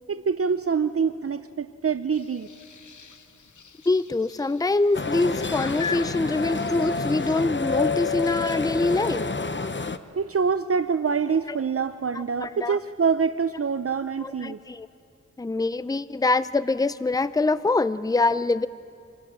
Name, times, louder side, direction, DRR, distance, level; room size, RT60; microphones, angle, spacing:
voice 1, 0.1-2.5 10.2-14.6, right 6 dB, 50° right, 12 dB, 0.6 m, -25 dB
sound 1, 2.1-7.4, left 5 dB, 90° left, 1.0 m, -40 dB
voice 2, 3.9-9.2 11.5-11.6 12.1-12.8 14.2-14.9 15.4-18.7, left 3 dB, 15° left, 15 dB, 0.5 m, -24 dB
sound 2, 4.9-10.0, left 4 dB, 40° left, 0.9 m, -28 dB
27.5 x 24.5 x 7.5 m, 2.6 s
wide cardioid pair, 60°, 29 cm